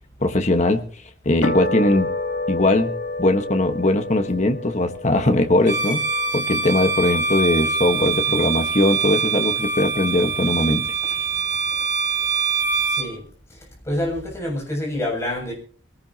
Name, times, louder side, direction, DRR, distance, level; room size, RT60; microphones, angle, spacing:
voice 1, 0.2-0.8 1.2-2.1 2.5-6.0 6.3-10.8, left 1 dB, 40° left, 6 dB, 1.4 m, -20 dB
sound 1, 1.4-7.9, left 2 dB, 85° left, 2.7 m, -30 dB
Bowed string instrument, 5.6-13.1, right 5 dB, 45° right, 3.2 m, -24 dB
voice 2, 12.8-13.2 13.8-15.5, left 1 dB, 15° left, -1 dB, 7.2 m, -27 dB
23.0 x 18.5 x 2.9 m, 0.43 s
head